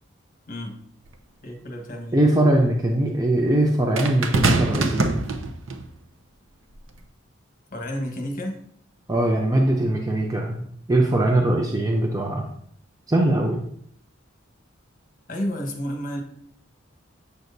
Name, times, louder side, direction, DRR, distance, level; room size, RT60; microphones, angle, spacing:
sound 1, 1.1-1.2 4.0-5.9 6.8-7.0, right 2 dB, 80° right, 0.8 m, -23 dB
voice 1, 1.4-2.2 7.7-8.6 15.3-16.2, equal, 40° left, 3 dB, 1.3 m, -31 dB
voice 2, 2.1-5.2 9.1-10.6 10.9-12.4 13.1-13.6, right 1 dB, 15° right, 0 dB, 0.6 m, -21 dB
8.2 x 6.2 x 2.7 m, 0.67 s
head